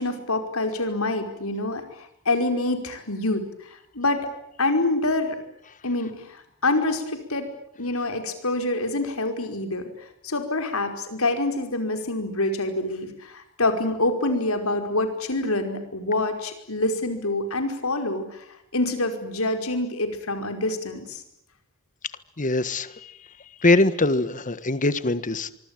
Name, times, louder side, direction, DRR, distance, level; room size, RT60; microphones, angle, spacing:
voice 1, 0.0-4.3 4.6-5.4 5.8-7.5 7.8-9.9 10.2-18.4 18.7-21.2, left 2 dB, 75° left, 6 dB, 5.1 m, -26 dB
voice 2, 22.4-23.1 23.6-25.5, left 2 dB, 35° left, 14 dB, 1.5 m, -22 dB
25.0 x 24.5 x 9.2 m, 0.72 s
head